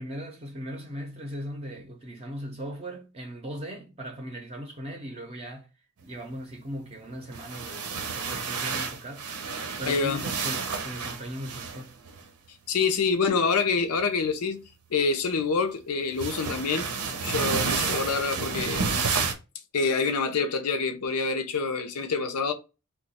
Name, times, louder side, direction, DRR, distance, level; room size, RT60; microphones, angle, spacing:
voice 1, 0.0-5.7 6.0-9.3 9.8-11.9, equal, 25° right, 0.6 m, -38 dB
sound 1, 7.2-12.2 14.0-14.3 16.2-19.3, right 5 dB, 80° right, 0.7 m, -30 dB
voice 2, 9.9-10.2 12.7-16.9 17.2-19.1 19.7-22.5, left 4 dB, 90° left, 0.6 m, -26 dB
2.9 x 2.2 x 4.0 m
head